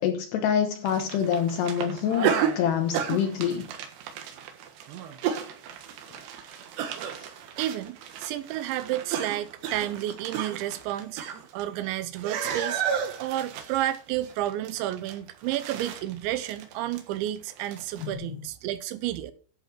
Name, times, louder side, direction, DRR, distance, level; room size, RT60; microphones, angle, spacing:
voice 1, 0.0-3.7 18.0-18.4, left 8 dB, 75° left, 2.9 m, -26 dB
sound 1, 0.9-11.9 12.2-18.1, right 8 dB, 70° right, 3.5 m, -33 dB
voice 2, 7.6-11.2 11.5-12.8 13.2-19.3, right 13 dB, 90° right, 3.1 m, -31 dB
11.0 x 7.2 x 6.0 m
omnidirectional pair, 5.2 m